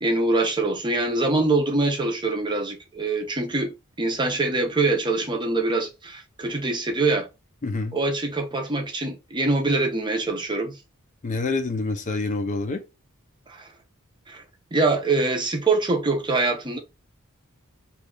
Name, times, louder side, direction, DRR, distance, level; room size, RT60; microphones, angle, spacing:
voice 1, 0.0-3.7 4.0-7.3 7.9-10.8 13.5-13.7 14.3-14.4 14.7-16.8, right 3 dB, 20° right, 0.6 m, -24 dB
voice 2, 7.6-8.0 11.2-12.8, left 3 dB, 35° left, 0.5 m, -27 dB
3.0 x 2.4 x 3.7 m
head